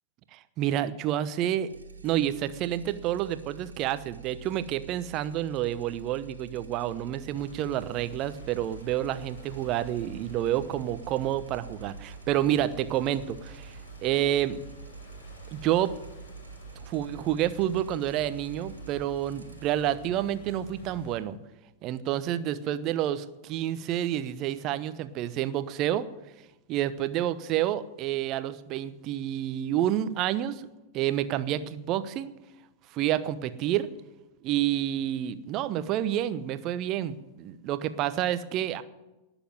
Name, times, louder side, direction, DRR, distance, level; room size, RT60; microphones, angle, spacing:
voice 1, 0.3-1.7 2.0-14.6 15.5-15.9 16.9-21.4 21.8-26.1 26.7-30.7 30.9-32.3 32.9-33.9 34.4-38.8, right 12 dB, 40° right, 14 dB, 1.0 m, -29 dB
sound 1, 1.7-21.0, right 7 dB, 75° right, 1.9 m, -47 dB
sound 2, 7.3-21.2, equal, 60° left, 4.8 m, -49 dB
18.5 x 7.2 x 9.3 m, 1.0 s
figure-of-eight pair, 90°, 0 cm